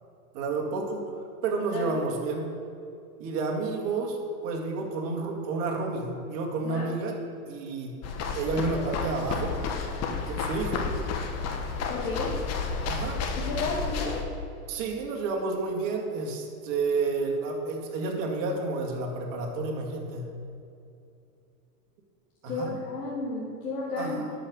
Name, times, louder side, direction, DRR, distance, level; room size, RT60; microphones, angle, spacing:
voice 1, 0.3-1.0 1.4-2.4 3.2-4.2 4.4-7.1 7.5-7.9 8.3-9.5 10.2-10.9 12.9-13.2 14.7-20.3 22.4-22.7 24.0-24.3, right 3 dB, 50° right, 1 dB, 2.3 m, -30 dB
sound 1, 8.0-14.2, left 5 dB, 35° left, 1.3 m, -31 dB
voice 2, 11.9-12.4 13.4-14.2 22.5-24.2, left 3 dB, 90° left, -6 dB, 2.1 m, -32 dB
11.5 x 5.5 x 6.5 m, 2.6 s
hypercardioid pair, 110°, 47 cm